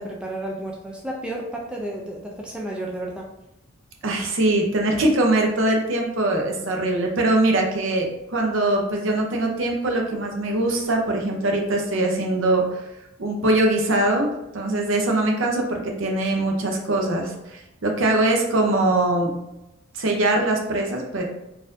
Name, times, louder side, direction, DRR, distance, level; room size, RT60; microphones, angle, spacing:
voice 1, 0.0-3.3, right 1 dB, 5° right, -2 dB, 0.3 m, -32 dB
voice 2, 4.0-12.8 13.2-14.3 14.5-19.3 19.9-21.2, right 2 dB, 65° right, 1 dB, 0.6 m, -22 dB
4.1 x 2.5 x 2.6 m, 0.90 s
head